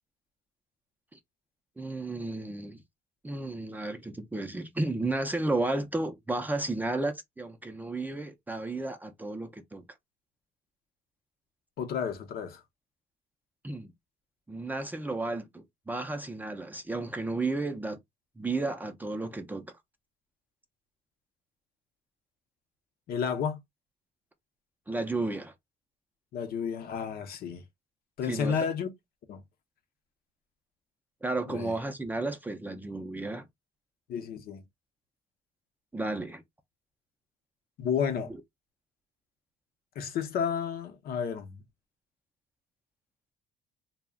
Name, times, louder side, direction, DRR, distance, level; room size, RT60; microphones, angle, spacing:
voice 1, 1.8-2.8 3.2-9.9 13.6-13.9 14.5-18.0 18.4-19.7 24.9-25.5 28.2-28.6 31.2-33.5 35.9-36.4, right 2 dB, 10° right, 0.4 m, -33 dB
voice 2, 11.8-12.6 23.1-23.6 26.3-27.6 28.2-28.9 29.3-29.4 31.5-31.8 34.1-34.6 37.8-38.3 40.0-41.6, left 7 dB, 65° left, 0.7 m, -31 dB
2.4 x 2.1 x 3.5 m
cardioid pair, 110°, 17 cm